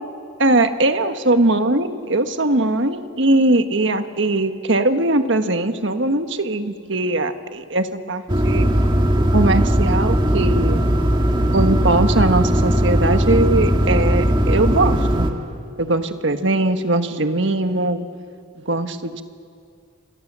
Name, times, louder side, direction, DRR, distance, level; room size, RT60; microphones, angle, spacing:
voice 1, 0.4-8.7 9.3-10.8 11.5-15.3 15.8-18.1 18.6-19.2, right 2 dB, 65° right, 8 dB, 1.5 m, -20 dB
sound 1, 8.3-15.3, equal, 25° right, 1.8 m, -18 dB
28.0 x 26.5 x 7.5 m, 2.3 s
head